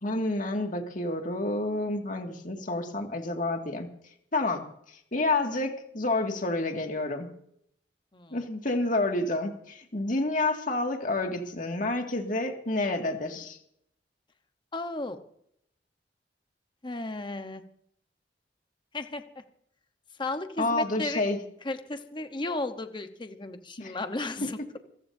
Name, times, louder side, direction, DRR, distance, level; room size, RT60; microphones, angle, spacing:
voice 1, 0.0-3.9 4.3-7.3 8.3-13.6 20.6-21.4 23.8-24.0, left 2 dB, 50° left, 3 dB, 2.2 m, -29 dB
voice 2, 14.7-15.2 16.8-17.6 18.9-19.2 20.2-21.2 21.6-24.8, left 2 dB, 25° left, 8 dB, 1.0 m, -34 dB
27.0 x 14.5 x 2.7 m, 0.70 s
head